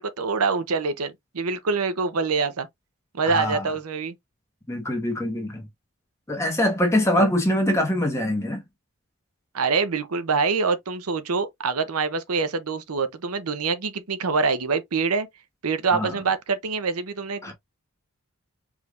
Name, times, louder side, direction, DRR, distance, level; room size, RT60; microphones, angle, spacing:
voice 1, 0.0-2.7 3.1-4.1 7.2-7.3 9.5-15.3 15.6-17.5, right 4 dB, 90° right, 0.7 m, -25 dB
voice 2, 3.2-3.7 4.7-5.7 6.3-8.6 15.9-16.2 17.4-17.5, left 1 dB, 15° left, 1.3 m, -24 dB
4.8 x 3.4 x 2.4 m
head